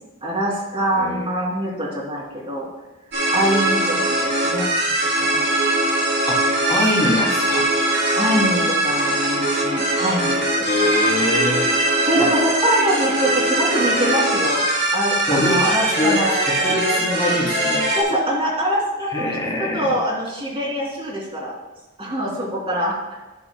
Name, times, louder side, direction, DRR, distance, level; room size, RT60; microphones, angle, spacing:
voice 1, 0.2-2.7 3.3-5.4 8.1-11.3 12.0-14.6 14.9-16.3 18.0-21.6 22.0-23.2, equal, 30° right, -3 dB, 2.9 m, -24 dB
voice 2, 0.9-1.3 6.3-6.4 6.7-7.7 10.6-11.7 15.3-15.6 16.0-17.9 19.1-19.9, left 2 dB, 20° left, -3 dB, 2.9 m, -23 dB
sound 1, 3.1-18.0, right 1 dB, 60° right, 3.7 m, -21 dB
12.0 x 11.0 x 2.3 m, 1.1 s
head